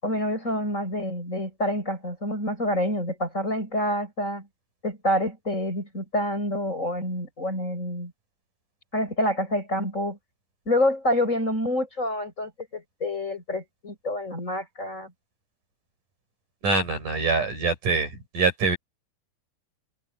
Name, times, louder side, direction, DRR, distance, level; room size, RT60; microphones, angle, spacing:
voice 1, 0.0-4.5 4.8-8.1 8.9-10.2 10.7-15.1, left 1 dB, 20° left, 7.2 m, -27 dB
voice 2, 16.6-18.1 18.3-18.8, right 4 dB, 55° right, 8.3 m, -24 dB
omnidirectional pair, 4.3 m